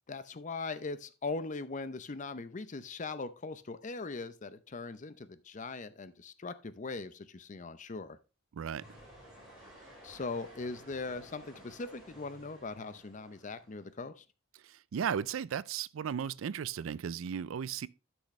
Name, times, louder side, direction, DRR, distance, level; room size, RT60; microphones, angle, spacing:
voice 1, 0.1-8.2 10.0-14.2, left 3 dB, 40° left, 0.6 m, -40 dB
voice 2, 8.5-8.8 14.6-17.9, right 7 dB, 75° right, 0.4 m, -35 dB
sound 1, 8.8-13.9, right 1 dB, 5° right, 4.2 m, -55 dB
11.5 x 6.3 x 3.1 m
head